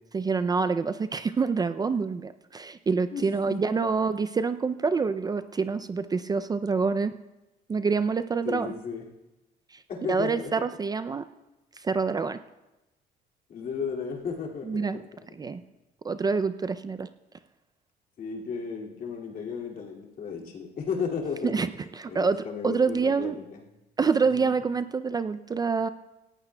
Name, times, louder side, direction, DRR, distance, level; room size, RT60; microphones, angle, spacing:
voice 1, 0.1-7.1 7.7-8.7 9.7-11.2 11.8-12.4 14.7-15.0 15.3-15.6 16.0-17.1 21.4-21.7 21.9-23.4 24.0-25.9, right 5 dB, 25° right, 11 dB, 0.4 m, -27 dB
voice 2, 3.1-3.8 8.4-9.1 9.9-10.5 13.5-15.0 18.2-21.7 22.1-23.6 24.3-24.5, left 5 dB, 55° left, -1 dB, 2.4 m, -34 dB
18.0 x 15.0 x 2.2 m, 1.0 s
cardioid pair, 110°, 17 cm